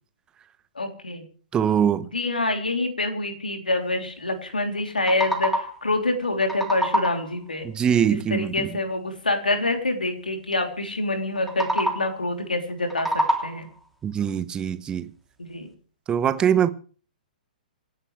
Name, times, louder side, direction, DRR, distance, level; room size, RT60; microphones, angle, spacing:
voice 1, 0.8-1.3 2.1-7.7 8.1-13.7 15.4-15.7, left 2 dB, 80° left, 3.4 m, -26 dB
voice 2, 1.5-2.1 7.6-8.7 14.0-15.1 16.1-16.7, right 8 dB, 15° right, 1.0 m, -22 dB
sound 1, 4.8-5.9 6.2-7.4 11.4-12.2 12.7-13.8, equal, ahead, 3.2 m, -27 dB
27.5 x 11.0 x 3.4 m
figure-of-eight pair, 115°, 5 cm